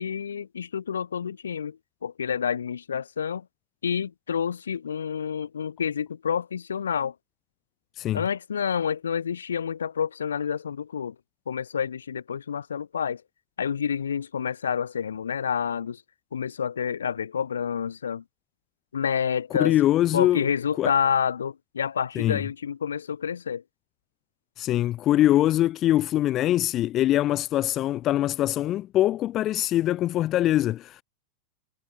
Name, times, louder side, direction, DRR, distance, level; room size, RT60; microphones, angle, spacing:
voice 1, 0.0-3.4 3.8-7.1 8.1-11.1 11.5-13.2 13.6-16.0 16.3-18.2 18.9-19.8 20.1-23.6, left 7 dB, 70° left, 1.5 m, -28 dB
voice 2, 19.6-20.5 20.8-20.9 22.2-22.4 24.6-31.0, left 13 dB, 35° left, 0.4 m, -23 dB
figure-of-eight pair, 90°, 0 cm